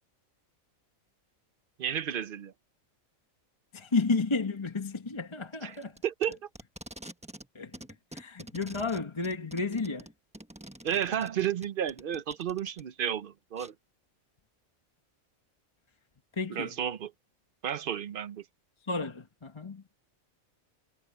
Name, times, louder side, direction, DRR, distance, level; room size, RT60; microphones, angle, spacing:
voice 1, 1.8-2.5 5.6-5.8 6.0-6.4 10.8-13.7 16.5-17.1 17.6-18.4, right 9 dB, 50° right, 0.7 m, -32 dB
voice 2, 3.7-6.0 7.5-7.8 8.1-10.1 16.4-16.7 18.9-19.8, left 3 dB, 25° left, 1.0 m, -32 dB
Packing tape duct tape, 5.7-7.5 7.7-12.8 13.6-13.7, right 1 dB, 5° right, 1.0 m, -47 dB
omnidirectional pair, 1.4 m